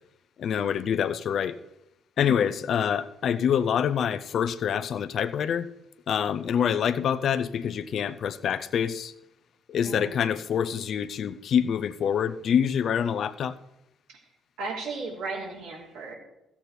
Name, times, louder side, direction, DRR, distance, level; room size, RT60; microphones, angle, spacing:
voice 1, 0.4-1.6 2.2-5.7 6.1-9.1 9.7-13.6, left 8 dB, 55° left, 15 dB, 0.6 m, -26 dB
voice 2, 2.3-2.6 9.8-10.3 14.1-14.2 14.6-16.2, right 3 dB, 70° right, -2 dB, 3.2 m, -36 dB
14.5 x 8.5 x 4.3 m, 0.88 s
hypercardioid pair, 45°, 0 cm